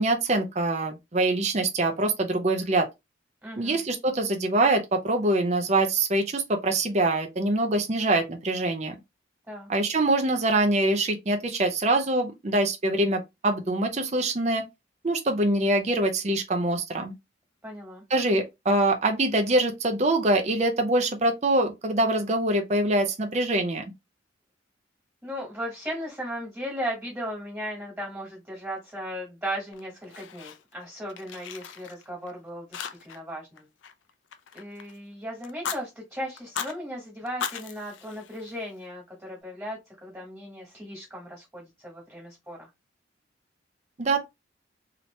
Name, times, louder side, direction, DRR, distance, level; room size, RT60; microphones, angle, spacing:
voice 1, 0.0-2.9 3.6-9.0 9.7-14.6 15.0-17.1 18.1-23.8 44.0-44.2, right 2 dB, 35° right, 0.5 m, -24 dB
voice 2, 3.4-3.8 9.5-9.7 17.6-18.0 25.2-33.7 34.5-42.7, equal, 15° right, 1.5 m, -36 dB
Fire, 29.7-30.8 31.1-32.3 32.7-33.3 33.6-35.0 35.4-35.8 36.4-36.8 37.3-38.8, left 7 dB, 80° left, 0.5 m, -37 dB
2.9 x 2.8 x 3.1 m
head